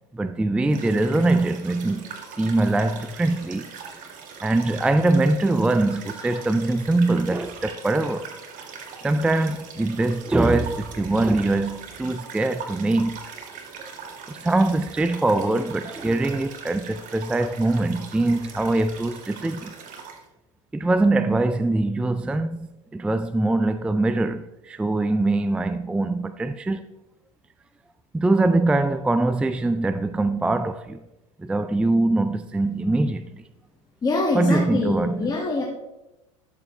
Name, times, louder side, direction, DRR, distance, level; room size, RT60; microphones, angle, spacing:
voice 1, 0.1-3.7 4.4-8.3 9.0-13.2 14.3-19.7 20.7-26.9 28.1-31.0 31.4-33.4 34.3-35.3, right 2 dB, 5° right, 0.3 m, -23 dB
sound 1, 0.7-20.2, right 6 dB, 50° right, 1.8 m, -41 dB
voice 2, 34.0-35.6, left 3 dB, 20° left, 1.8 m, -24 dB
13.0 x 6.8 x 3.2 m
hypercardioid pair, 95°, 18 cm